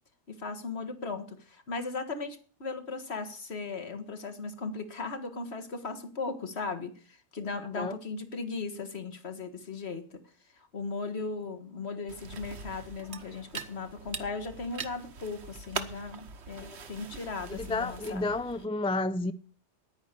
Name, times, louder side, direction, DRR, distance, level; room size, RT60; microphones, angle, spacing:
voice 1, 0.3-10.2 10.5-18.2, left 4 dB, 60° left, 1.9 m, -37 dB
sound 1, 12.1-18.6, right 5 dB, 65° right, 1.4 m, -42 dB
voice 2, 17.5-19.3, left 2 dB, 10° left, 0.3 m, -31 dB
10.0 x 9.6 x 6.8 m
omnidirectional pair, 1.2 m